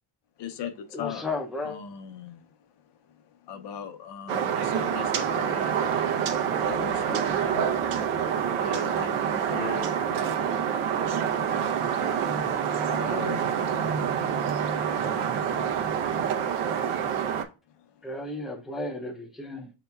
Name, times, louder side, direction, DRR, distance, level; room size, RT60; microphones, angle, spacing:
voice 1, 0.4-1.2 1.6-2.5 3.4-5.9 6.5-7.7 8.6-9.9 13.0-13.5, left 8 dB, 55° left, 0.6 m, -38 dB
voice 2, 0.9-1.8 18.0-19.7, left 2 dB, ahead, 0.4 m, -34 dB
sound 1, 4.3-17.4, right 8 dB, 85° right, 0.8 m, -27 dB
voice 3, 12.2-16.1, right 3 dB, 50° right, 0.6 m, -38 dB
7.8 x 2.9 x 2.2 m
cardioid pair, 150°, 49 cm